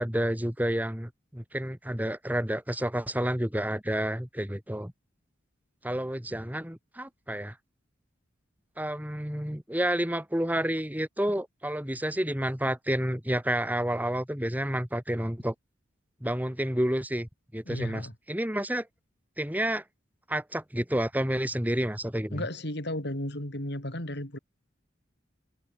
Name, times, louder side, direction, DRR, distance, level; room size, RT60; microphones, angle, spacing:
voice 1, 0.0-4.9 5.8-7.6 8.8-15.5 16.2-18.9 19.4-19.8 20.3-22.4, right 1 dB, 10° right, 2.5 m, -30 dB
voice 2, 17.6-18.1 22.3-24.4, left 1 dB, 60° left, 4.9 m, -34 dB
head